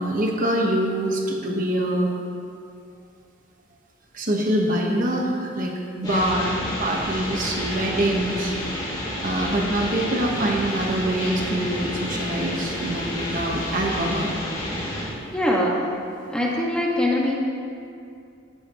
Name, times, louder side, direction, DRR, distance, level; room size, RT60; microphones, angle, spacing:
voice 1, 0.0-2.1 4.1-6.5 6.8-8.5 9.2-14.3, right 1 dB, 40° right, -1 dB, 1.3 m, -24 dB
sound 1, 6.0-15.1, left 1 dB, 20° left, 2.8 m, -30 dB
voice 2, 6.0-6.5 15.3-15.8 16.3-17.3, left 1 dB, 5° left, -4 dB, 1.6 m, -23 dB
17.0 x 12.5 x 3.1 m, 2.5 s
head